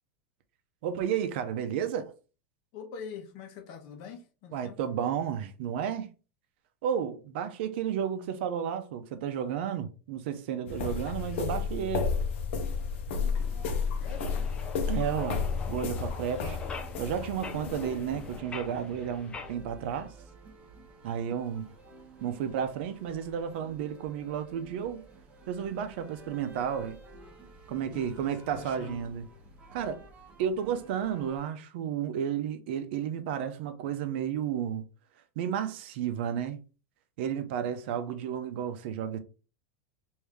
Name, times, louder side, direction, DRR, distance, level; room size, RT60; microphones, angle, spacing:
voice 1, 0.8-2.1 4.5-6.1 6.8-12.1 14.9-16.6 17.0-20.1 21.0-21.7 22.2-25.0 25.5-27.0 27.7-29.2 29.7-30.0 30.4-34.8 35.4-36.6 37.2-39.2, right 8 dB, 65° right, 0.6 m, -32 dB
voice 2, 2.7-4.8 13.1-14.5 17.4-17.5 27.9-29.0, left 6 dB, 50° left, 0.9 m, -45 dB
sound 1, 10.7-18.4, left 5 dB, 75° left, 0.7 m, -32 dB
sound 2, 13.4-31.4, right 2 dB, 20° right, 0.9 m, -52 dB
sound 3, 14.0-19.5, left 4 dB, 15° left, 0.4 m, -43 dB
3.3 x 2.7 x 3.5 m
supercardioid pair, 155°, 7 cm